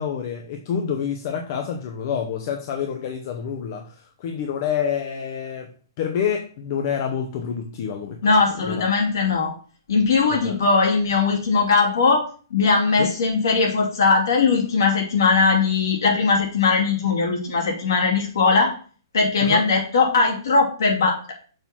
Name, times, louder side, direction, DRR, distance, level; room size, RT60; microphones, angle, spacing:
voice 1, 0.0-5.7 6.0-8.2 8.6-8.9 10.3-10.6 13.0-13.1 19.4-19.7, left 7 dB, 45° left, 4 dB, 0.9 m, -27 dB
voice 2, 8.2-9.5 9.9-18.7 19.1-21.3, left 4 dB, 65° left, 0 dB, 2.7 m, -20 dB
6.6 x 4.2 x 6.0 m, 0.41 s
figure-of-eight pair, 115°, 2 cm